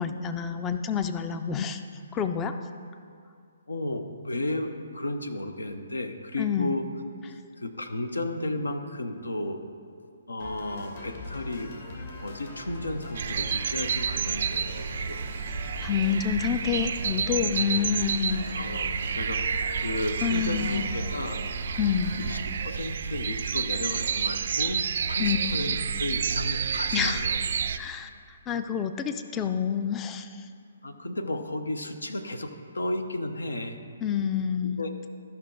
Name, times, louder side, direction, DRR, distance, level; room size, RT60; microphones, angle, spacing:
voice 1, 0.0-1.8 2.1-2.5 6.4-6.8 15.8-18.5 20.2-21.0 21.8-22.2 25.2-25.6 26.9-27.2 27.8-28.1 28.5-30.4 34.0-34.8, left 8 dB, 20° left, 8 dB, 0.4 m, -28 dB
voice 2, 3.7-6.9 7.6-9.6 10.3-11.7 12.2-15.2 18.5-21.5 22.2-27.4 30.8-33.8 34.8-34.9, left 1 dB, 85° left, 7 dB, 0.8 m, -33 dB
sound 1, 10.4-22.4, left 2 dB, 60° left, 2.2 m, -40 dB
sound 2, 13.1-27.8, right 7 dB, 55° right, 0.4 m, -30 dB
13.5 x 5.7 x 3.9 m, 2.2 s
figure-of-eight pair, 135°, 0 cm